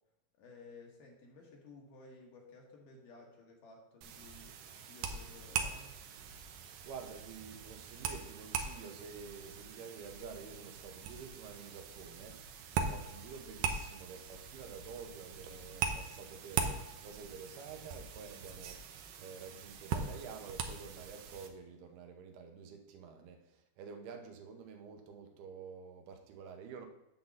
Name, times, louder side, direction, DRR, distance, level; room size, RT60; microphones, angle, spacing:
voice 1, 0.4-4.6 4.9-6.0, left 3 dB, 65° left, 0 dB, 2.7 m, -55 dB
sound 1, 4.0-21.5, right 6 dB, 75° right, 2.3 m, -41 dB
voice 2, 6.9-26.9, right 5 dB, 90° right, 4 dB, 3.0 m, -49 dB
10.0 x 4.0 x 7.2 m, 0.90 s
omnidirectional pair, 4.4 m